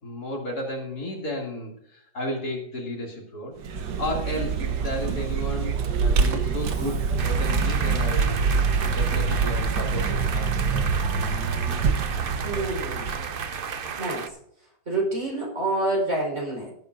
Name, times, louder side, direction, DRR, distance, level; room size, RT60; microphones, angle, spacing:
voice 1, 0.0-8.4 8.9-11.2, left 1 dB, 55° left, -1 dB, 3.1 m, -33 dB
Vehicle, 3.6-13.9, right 5 dB, 70° right, 1.6 m, -25 dB
sound 1, 7.2-14.3, right 6 dB, 85° right, 0.4 m, -33 dB
voice 2, 12.4-13.2 14.0-14.3 14.9-16.7, right 2 dB, 40° right, -1 dB, 4.7 m, -27 dB
18.0 x 9.7 x 2.6 m, 0.72 s
omnidirectional pair, 2.0 m